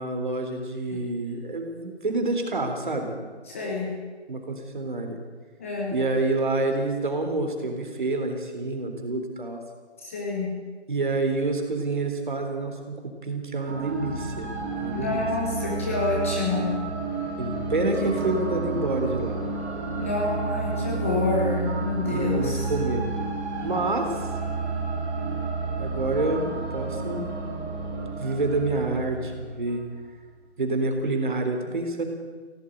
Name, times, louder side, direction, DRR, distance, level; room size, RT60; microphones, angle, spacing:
voice 1, 0.0-3.1 4.3-5.2 5.9-9.6 10.9-13.0 13.2-14.5 14.8-15.2 17.4-19.4 22.1-23.1 23.6-24.3 25.8-27.3 28.2-29.8 30.6-32.0, right 2 dB, 45° right, 4 dB, 3.6 m, -27 dB
voice 2, 3.5-3.9 5.6-5.9 10.0-10.5 14.9-16.7 17.8-17.9 18.2-18.3 19.9-22.7, left 3 dB, 10° left, -3 dB, 1.5 m, -28 dB
sound 1, 13.7-29.9, right 3 dB, 10° right, 2.3 m, -31 dB
17.0 x 17.0 x 8.9 m, 1.4 s
figure-of-eight pair, 170°, 34 cm